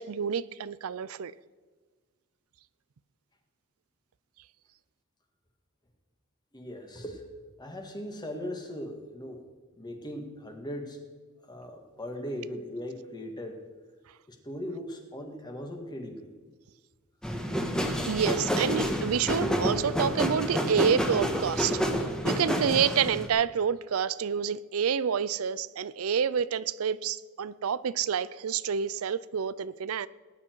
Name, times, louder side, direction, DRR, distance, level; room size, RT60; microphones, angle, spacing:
voice 1, 0.0-1.3 18.1-21.8 22.2-30.1, right 7 dB, 75° right, 0.5 m, -28 dB
voice 2, 6.5-7.2 7.6-9.4 9.7-11.0 11.4-13.6 14.3-16.3, equal, 20° left, 1.9 m, -39 dB
sound 1, 17.2-23.3, equal, 5° left, 1.4 m, -29 dB
19.0 x 10.0 x 4.7 m
head